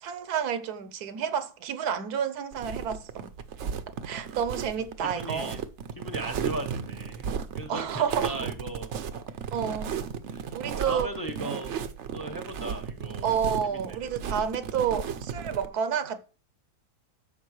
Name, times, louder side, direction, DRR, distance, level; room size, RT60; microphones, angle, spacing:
voice 1, 0.0-3.3 4.0-5.6 7.7-8.4 9.5-10.0 10.5-11.1 13.2-16.2, right 7 dB, 75° right, 1.2 m, -30 dB
sound 1, 2.5-15.7, right 7 dB, 60° right, 0.8 m, -35 dB
voice 2, 4.3-4.7 5.0-5.6 6.0-8.9 10.3-11.8 12.1-13.3 13.6-14.2, right 1 dB, 15° left, 0.7 m, -38 dB
11.0 x 7.0 x 3.2 m
omnidirectional pair, 1.7 m